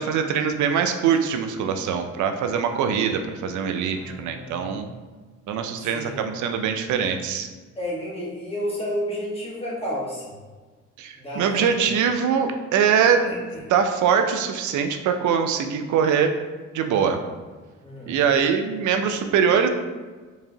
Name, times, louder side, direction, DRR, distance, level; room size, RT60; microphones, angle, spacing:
voice 1, 0.0-4.9 5.5-7.5 11.0-13.3 13.7-16.4 16.7-17.2 18.1-19.7, right 7 dB, 75° right, 6 dB, 0.5 m, -22 dB
voice 2, 3.9-4.8 5.8-6.2 7.7-10.4 11.1-12.0 13.0-13.6 17.8-18.2, equal, 20° left, -6 dB, 1.4 m, -32 dB
4.7 x 2.8 x 2.8 m, 1.4 s
cardioid pair, 90°, 30 cm